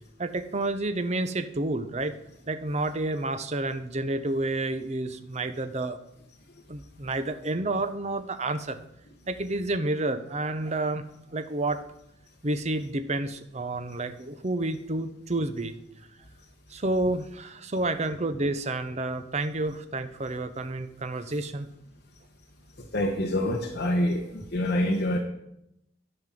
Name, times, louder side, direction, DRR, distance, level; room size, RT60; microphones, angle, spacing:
voice 1, 0.2-2.1 2.5-6.0 6.7-8.8 9.3-11.0 11.3-11.8 12.4-15.8 16.7-21.7, right 2 dB, 35° right, 10 dB, 0.7 m, -30 dB
voice 2, 22.8-25.2, left 1 dB, 55° left, 0 dB, 1.1 m, -27 dB
11.0 x 5.5 x 7.5 m, 0.80 s
head